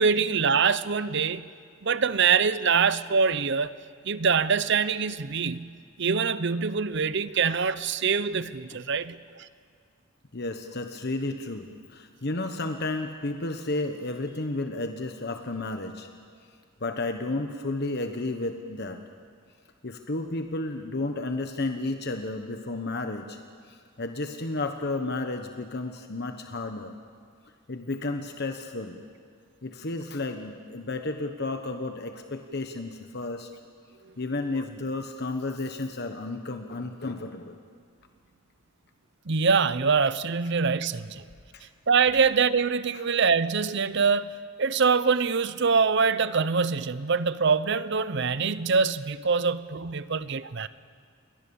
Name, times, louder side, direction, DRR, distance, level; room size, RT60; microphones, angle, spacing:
voice 1, 0.0-1.4 1.8-3.7 4.0-5.7 6.0-9.5 39.3-41.2 41.9-44.3 44.6-50.7, right 5 dB, 60° right, 15 dB, 0.7 m, -24 dB
voice 2, 10.3-16.1 16.8-19.0 19.8-23.4 23.7-27.0 27.7-29.0 29.6-33.5 34.2-37.6 41.5-41.6, left 2 dB, 50° left, 5 dB, 1.2 m, -32 dB
29.5 x 22.5 x 7.2 m, 2.1 s
head